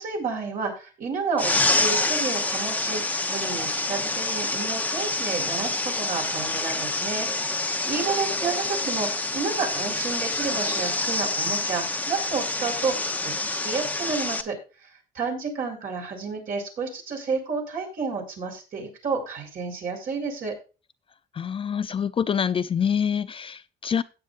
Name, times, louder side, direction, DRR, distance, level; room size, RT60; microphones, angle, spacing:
voice 1, 0.0-13.3 13.6-14.9 15.1-20.5, right 4 dB, 55° right, 1 dB, 5.1 m, -31 dB
sound 1, 1.4-14.4, left 2 dB, 10° left, 0.9 m, -27 dB
voice 2, 21.3-24.0, left 7 dB, 30° left, 13 dB, 0.5 m, -26 dB
16.5 x 8.9 x 2.6 m, 0.31 s
cardioid pair, 110°, 17 cm